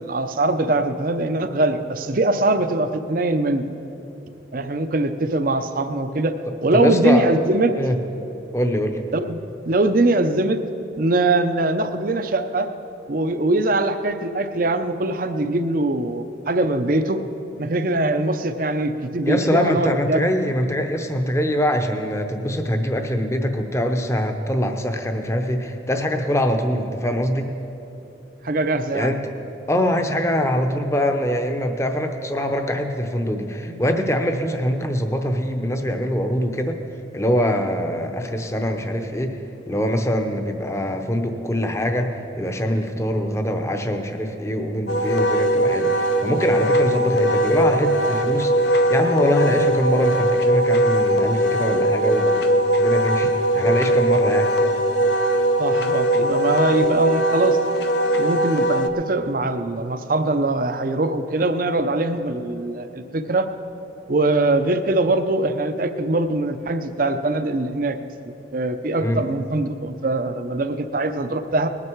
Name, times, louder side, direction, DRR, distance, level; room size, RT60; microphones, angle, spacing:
voice 1, 0.0-3.6 4.5-6.3 6.6-7.7 9.1-9.4 9.7-10.6 11.0-12.7 13.1-17.2 17.6-20.2 28.4-29.1 55.6-57.6 58.2-63.5 64.1-68.0 68.5-71.7, right 2 dB, 45° right, 9 dB, 0.6 m, -22 dB
voice 2, 6.7-7.3 7.8-8.0 8.5-9.0 19.2-27.5 28.9-29.3 29.7-36.8 37.1-39.4 39.7-52.5 52.8-54.5 69.0-69.2, equal, 15° left, 6 dB, 0.8 m, -23 dB
Wind instrument woodwind instrument, 44.9-58.9, right 1 dB, 60° left, 0.7 m, -20 dB
20.0 x 9.8 x 4.6 m, 2.9 s
head